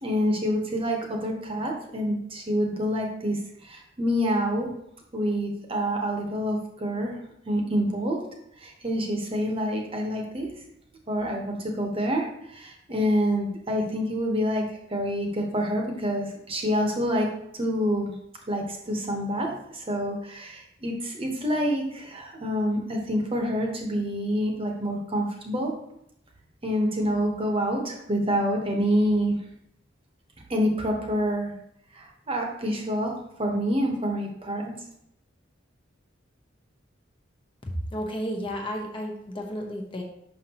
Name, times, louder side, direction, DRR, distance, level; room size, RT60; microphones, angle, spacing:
voice 1, 0.0-4.7 5.1-7.2 7.5-8.2 8.6-10.5 11.1-17.3 17.5-18.1 18.5-25.7 26.6-29.4 30.5-31.5 31.9-33.1 33.4-34.7, equal, 30° right, 1 dB, 1.0 m, -27 dB
voice 2, 37.6-40.0, equal, 25° left, 1 dB, 0.8 m, -32 dB
6.2 x 5.5 x 2.9 m, 0.75 s
head